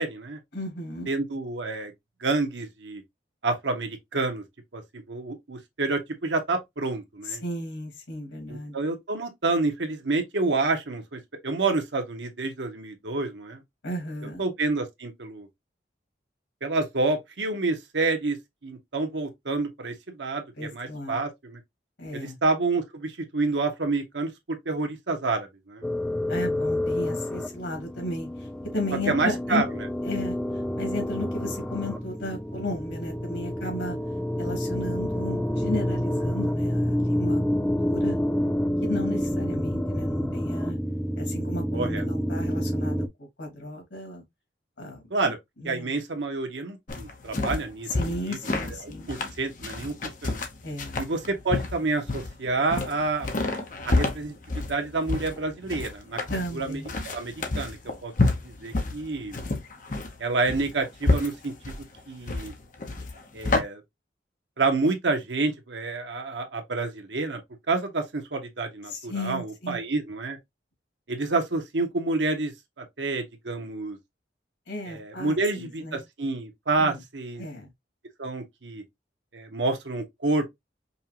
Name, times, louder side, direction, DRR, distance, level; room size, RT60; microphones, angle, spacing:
voice 1, 0.0-0.4 1.1-1.9 2.2-3.0 3.4-4.4 4.7-7.4 8.5-13.6 14.4-15.5 16.6-18.4 18.6-21.6 22.1-25.9 29.1-29.6 41.7-42.0 45.1-45.4 45.6-48.4 48.7-49.9 50.2-50.4 51.0-53.3 53.8-56.2 56.5-58.1 58.4-59.4 60.2-61.7 62.1-62.5 63.3-63.8 64.6-67.4 67.7-70.4 71.1-74.0 74.9-77.4 78.2-78.8 79.3-80.5, right 3 dB, 75° right, 1.0 m, -28 dB
voice 2, 0.5-1.1 7.3-8.7 13.8-14.4 20.6-21.2 22.0-22.4 26.3-28.5 28.7-29.6 30.0-30.4 30.8-34.0 34.4-38.2 38.8-40.8 41.2-44.2 44.8-45.0 45.6-45.9 47.9-49.1 50.6-51.0 56.3-56.9 68.9-69.8 74.7-76.0 76.8-77.0 77.4-77.7, left 1 dB, 90° left, 2.4 m, -34 dB
sound 1, 25.8-43.1, left 1 dB, 5° left, 0.4 m, -28 dB
sound 2, 46.9-63.6, left 2 dB, 45° left, 0.9 m, -29 dB
5.4 x 2.3 x 2.8 m
head